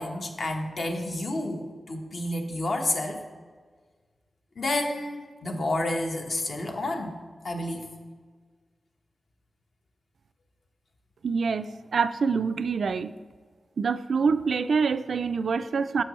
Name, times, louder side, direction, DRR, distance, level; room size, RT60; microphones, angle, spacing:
voice 1, 0.0-3.2 4.6-7.2 7.4-7.9, left 1 dB, 60° left, 3 dB, 1.1 m, -30 dB
voice 2, 11.2-13.1 13.8-16.0, right 5 dB, 80° right, 12 dB, 0.3 m, -26 dB
9.9 x 7.4 x 3.1 m, 1.5 s
wide cardioid pair, 115°, 0 cm